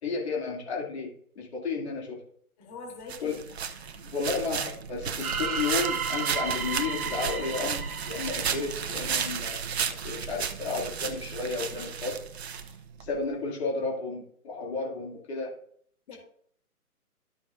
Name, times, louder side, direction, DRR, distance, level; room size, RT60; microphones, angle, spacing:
voice 1, 0.0-1.1 1.4-2.2 3.2-3.4 4.1-9.6 10.0-12.2 12.6-12.7 13.0-15.6 16.1-16.2, left 4 dB, 45° left, -3 dB, 2.5 m, -32 dB
voice 2, 2.6-3.4 3.8-3.9 16.1-16.2, left 4 dB, 25° left, 0 dB, 2.7 m, -43 dB
sound 1, 3.1-13.1, right 7 dB, 45° right, 0.9 m, -33 dB
sound 2, 5.2-9.3, right 6 dB, 70° right, 1.2 m, -33 dB
13.5 x 5.9 x 2.5 m, 0.63 s
hypercardioid pair, 150°, 45 cm